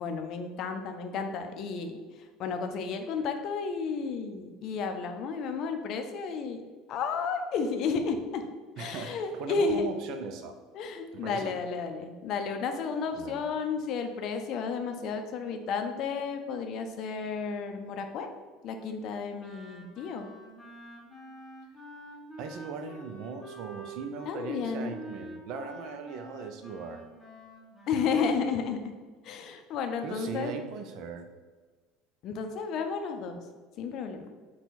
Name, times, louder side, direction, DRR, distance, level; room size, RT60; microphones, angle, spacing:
voice 1, 0.0-2.0 2.4-6.6 6.9-8.5 8.8-9.9 10.7-18.3 18.6-20.3 24.3-25.0 27.9-28.9 29.2-30.5 32.2-33.4 33.8-34.3, left 5 dB, 50° left, 6 dB, 0.5 m, -32 dB
voice 2, 8.8-10.6 11.1-11.6 13.2-13.5 22.4-27.0 30.0-31.3, right 5 dB, 55° right, 7 dB, 0.4 m, -39 dB
Wind instrument woodwind instrument, 19.4-28.4, right 1 dB, 10° left, 1.0 m, -47 dB
4.3 x 2.2 x 4.1 m, 1.4 s
figure-of-eight pair, 70°, 0 cm